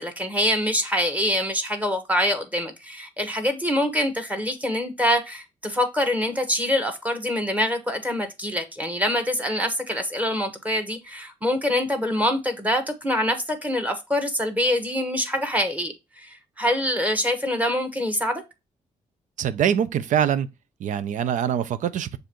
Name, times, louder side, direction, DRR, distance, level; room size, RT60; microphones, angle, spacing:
voice 1, 0.0-18.4, equal, 10° right, 1.3 m, -25 dB
voice 2, 19.4-20.5 20.8-22.2, right 9 dB, 70° right, 0.5 m, -24 dB
6.6 x 2.6 x 3.0 m
supercardioid pair, 65°, 13 cm